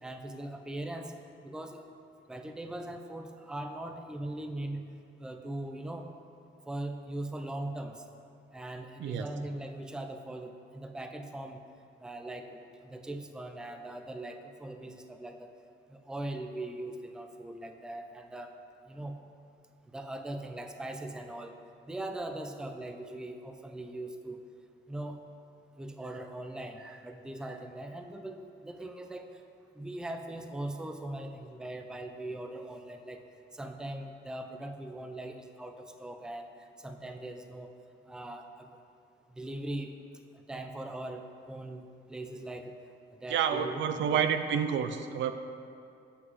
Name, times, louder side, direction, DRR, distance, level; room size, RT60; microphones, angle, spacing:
voice 1, 0.0-1.1 1.4-1.9 2.3-4.8 5.2-6.1 6.7-8.0 8.5-11.6 12.0-15.5 15.9-18.5 18.9-19.2 19.9-21.6 21.9-24.4 24.9-25.2 25.8-29.4 29.7-33.2 33.5-37.7 38.1-38.7 39.3-39.9 40.5-42.7 43.2-44.2, right 1 dB, 5° right, 6 dB, 0.4 m, -40 dB
voice 2, 43.3-45.3, right 8 dB, 70° right, 9 dB, 0.4 m, -29 dB
7.9 x 5.9 x 3.1 m, 2.4 s
cardioid pair, 90°, 20 cm